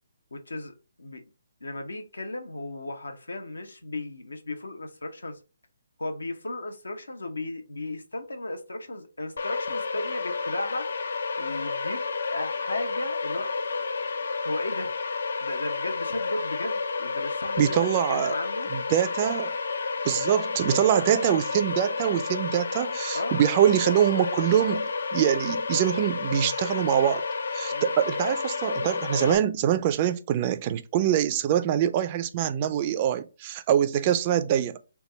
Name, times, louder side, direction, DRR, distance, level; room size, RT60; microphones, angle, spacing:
voice 1, 0.3-1.2 1.6-5.4 6.0-10.9 11.4-12.0 12.3-13.5 14.4-14.9 15.4-17.7 18.1-18.7 23.1-23.4 27.7-27.9, left 2 dB, 80° left, 0.9 m, -35 dB
sound 1, 9.4-29.4, left 4 dB, 65° left, 0.4 m, -31 dB
voice 2, 17.6-18.4 18.7-19.6 20.0-27.2 27.5-34.8, right 10 dB, 30° right, 0.4 m, -24 dB
3.4 x 2.3 x 4.0 m
figure-of-eight pair, 145°, 0 cm